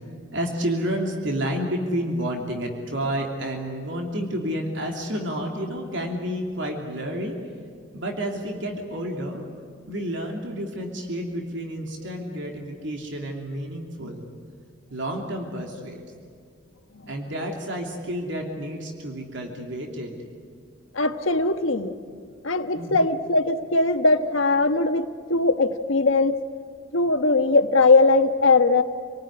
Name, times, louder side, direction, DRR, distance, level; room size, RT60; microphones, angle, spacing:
voice 1, 0.3-7.4 7.9-9.4 9.9-14.2 14.9-16.0 17.1-20.1 22.7-23.0, equal, 70° right, 1 dB, 3.0 m, -30 dB
voice 2, 20.9-21.9 22.4-26.4 26.9-28.8, left 3 dB, 90° left, 7 dB, 1.3 m, -20 dB
28.0 x 19.0 x 9.8 m, 2.2 s
head